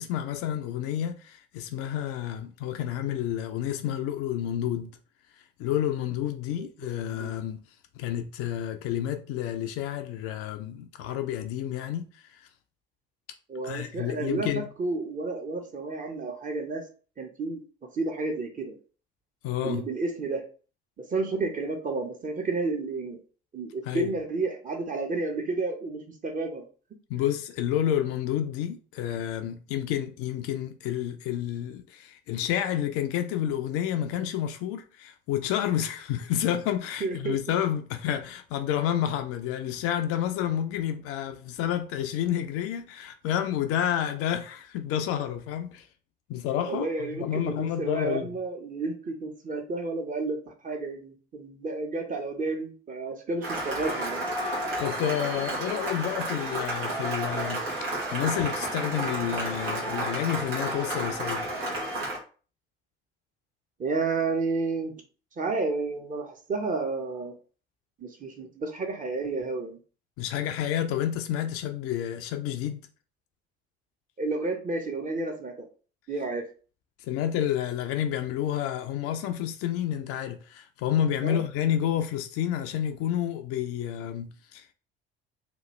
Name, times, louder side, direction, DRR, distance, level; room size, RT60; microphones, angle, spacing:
voice 1, 0.0-4.9 5.6-7.6 8.0-12.5 13.6-14.6 19.4-19.8 23.8-24.1 27.1-45.9 46.3-48.3 54.8-61.5 70.2-72.8 77.0-84.7, left 10 dB, 50° left, 0.4 m, -30 dB
voice 2, 13.5-16.9 17.2-17.6 17.9-18.8 19.6-20.5 21.1-23.2 23.5-26.7 37.0-37.4 46.6-54.2 63.8-64.9 65.4-67.3 68.0-69.8 74.2-75.7 76.1-76.5 81.2-81.4, right 3 dB, 25° right, 0.8 m, -31 dB
Cheering / Applause, 53.4-62.2, right 1 dB, 75° right, 1.1 m, -31 dB
3.0 x 2.3 x 3.1 m
figure-of-eight pair, 55°, 31 cm